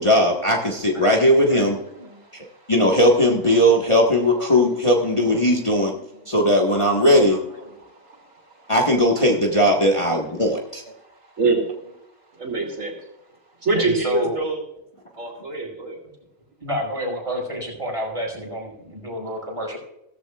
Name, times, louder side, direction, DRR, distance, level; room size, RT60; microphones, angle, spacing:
voice 1, 0.0-1.8 2.7-5.9 6.3-7.4 8.7-10.8, equal, 25° left, -1 dB, 1.6 m, -18 dB
voice 2, 1.5-2.2 3.5-3.6 4.0-4.5 5.0-5.1 5.3-5.4 5.7-6.2 6.9-7.0 7.3-7.4 7.7-7.8 10.0-10.2 13.8-14.4 16.6-19.8, equal, 25° right, -3 dB, 5.6 m, -31 dB
voice 3, 7.8-8.2 8.6-8.7 11.4-11.6 12.3-13.0 13.6-14.6 15.1-16.0, right 3 dB, 70° right, 1 dB, 3.2 m, -24 dB
16.5 x 14.5 x 2.4 m, 0.82 s
omnidirectional pair, 1.4 m